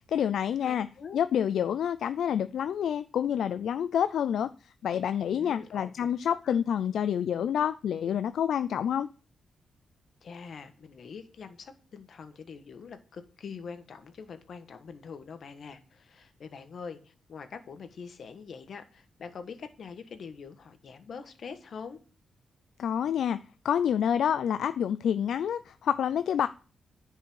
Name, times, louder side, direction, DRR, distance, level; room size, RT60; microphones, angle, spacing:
voice 1, 0.1-0.9 1.1-4.5 4.8-9.1 22.8-23.4 23.6-26.5, left 9 dB, 80° left, 0.4 m, -28 dB
voice 2, 0.6-1.2 5.4-6.1 6.4-6.5 10.2-22.0, left 5 dB, 65° left, 1.5 m, -44 dB
10.0 x 5.4 x 6.3 m
cardioid pair, 85°, 0 cm